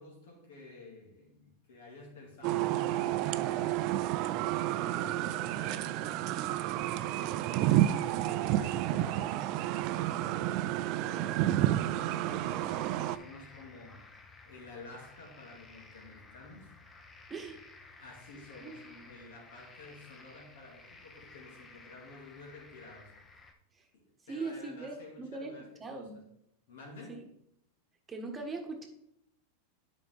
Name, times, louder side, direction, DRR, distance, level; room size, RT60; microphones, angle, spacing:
voice 1, 0.0-4.0 4.9-6.5 7.0-10.3 10.9-14.0 14.5-16.7 18.0-23.1 23.9-26.1 26.7-27.2, left 3 dB, 70° left, 0 dB, 2.3 m, -51 dB
sound 1, 2.4-13.2, right 13 dB, 50° right, 0.3 m, -30 dB
sound 2, 12.2-23.5, left 3 dB, 20° left, 0.9 m, -55 dB
voice 2, 24.2-25.5 25.8-26.2 27.1-27.2 28.1-28.9, right 3 dB, 20° right, 3 dB, 1.3 m, -40 dB
8.7 x 5.1 x 3.5 m, 0.75 s
hypercardioid pair, 100°, 0 cm